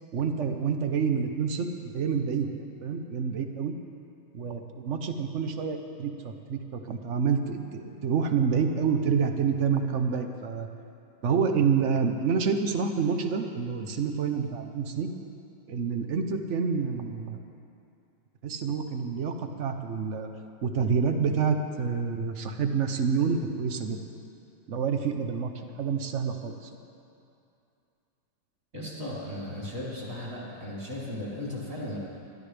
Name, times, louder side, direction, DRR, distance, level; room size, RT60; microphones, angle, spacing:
voice 1, 0.1-1.7 1.9-3.7 4.3-10.7 11.2-15.1 15.7-17.4 18.4-20.3 20.6-24.0 24.7-25.5 25.8-26.5, right 6 dB, 55° right, 6 dB, 0.8 m, -28 dB
voice 2, 28.7-32.0, left 1 dB, 40° right, -7 dB, 4.1 m, -36 dB
22.0 x 13.0 x 3.4 m, 2.6 s
omnidirectional pair, 2.2 m